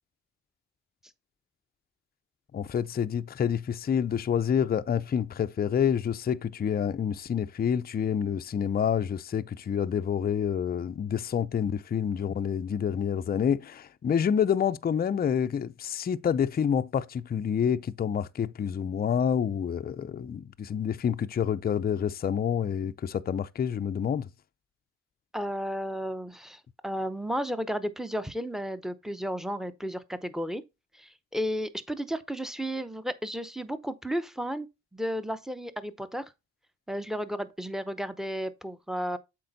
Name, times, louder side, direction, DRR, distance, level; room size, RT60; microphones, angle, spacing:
voice 1, 2.5-24.3, left 8 dB, 30° left, 0.5 m, -28 dB
voice 2, 25.3-30.6 31.0-34.7 34.9-36.2 36.9-39.2, equal, ahead, 0.7 m, -33 dB
7.6 x 4.4 x 4.0 m
cardioid pair, 75°, 32 cm